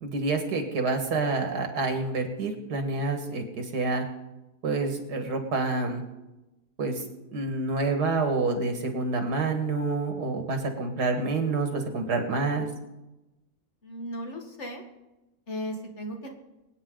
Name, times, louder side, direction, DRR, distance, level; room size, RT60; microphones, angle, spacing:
voice 1, 0.0-4.0 4.6-6.0 6.8-7.0 7.3-12.7, right 3 dB, 90° right, 5 dB, 2.4 m, -28 dB
voice 2, 13.8-14.8 15.5-16.3, equal, 45° left, 2 dB, 2.1 m, -36 dB
25.0 x 9.0 x 3.9 m, 0.99 s
omnidirectional pair, 1.7 m